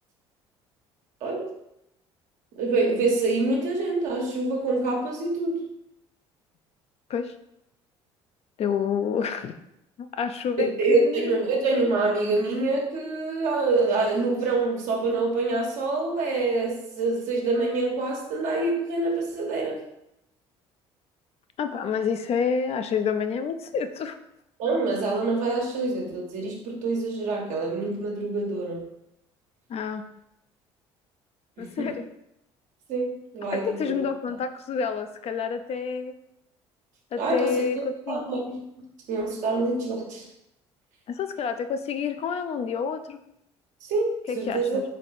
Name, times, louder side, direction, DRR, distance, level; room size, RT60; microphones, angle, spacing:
voice 1, 2.5-5.6 10.6-19.8 24.6-28.9 31.6-31.9 32.9-34.0 37.2-38.6 39.1-40.3 43.8-44.8, right 3 dB, 65° right, 0 dB, 1.2 m, -26 dB
voice 2, 8.6-9.5 10.0-11.4 21.6-24.2 29.7-30.1 31.6-32.0 33.5-36.1 37.1-38.2 41.1-43.2 44.3-44.8, left 6 dB, 50° left, 9 dB, 0.5 m, -28 dB
3.7 x 3.2 x 4.2 m, 0.81 s
hypercardioid pair, 65°, 14 cm